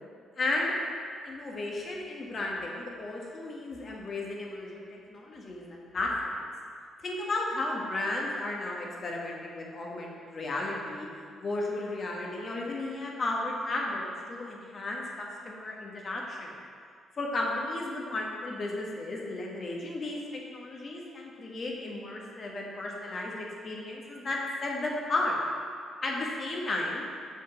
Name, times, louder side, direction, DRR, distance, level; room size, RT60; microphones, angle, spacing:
voice 1, 0.4-0.7 1.2-6.5 7.0-11.1 11.4-16.5 17.2-20.2 20.5-25.4 26.0-27.0, left 2 dB, 45° left, -2 dB, 1.4 m, -34 dB
6.6 x 5.3 x 3.9 m, 2.2 s
hypercardioid pair, 50°, 0 cm